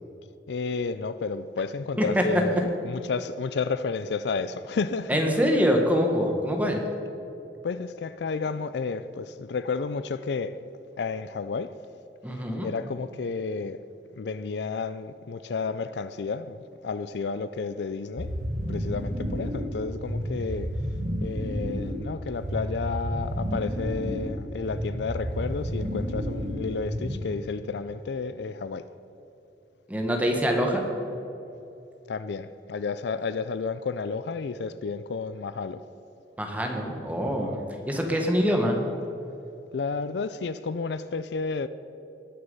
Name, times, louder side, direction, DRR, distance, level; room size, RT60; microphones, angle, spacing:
voice 1, 0.5-5.1 7.6-10.6 11.0-11.7 12.6-13.8 14.2-18.3 18.7-20.7 21.2-28.9 32.1-35.8 39.7-41.7, left 4 dB, 70° left, 0.4 m, -31 dB
voice 2, 5.1-6.8 12.2-12.7 29.9-30.8 36.4-37.6 37.9-38.8, equal, 10° right, 1.4 m, -24 dB
sound 1, 18.2-27.4, equal, 45° right, 1.2 m, -31 dB
20.0 x 6.8 x 5.5 m
head